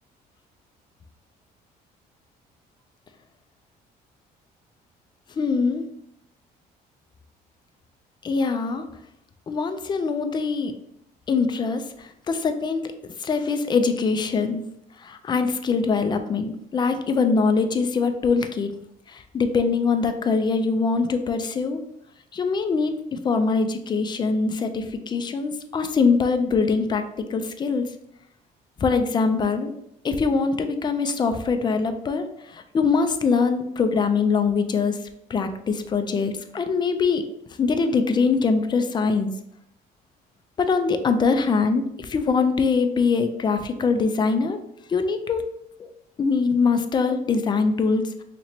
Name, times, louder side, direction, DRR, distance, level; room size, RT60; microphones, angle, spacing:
voice 1, 5.4-5.8 8.2-8.9 9.5-10.7 11.3-12.9 13.2-14.6 15.0-18.7 19.1-21.8 22.3-27.9 28.8-29.7 30.0-35.0 35.3-37.2 37.6-39.3 40.6-44.6 44.9-45.4 46.2-48.2, left 4 dB, 25° left, 8 dB, 0.4 m, -23 dB
3.0 x 2.8 x 4.3 m, 0.77 s
cardioid pair, 110°, 17 cm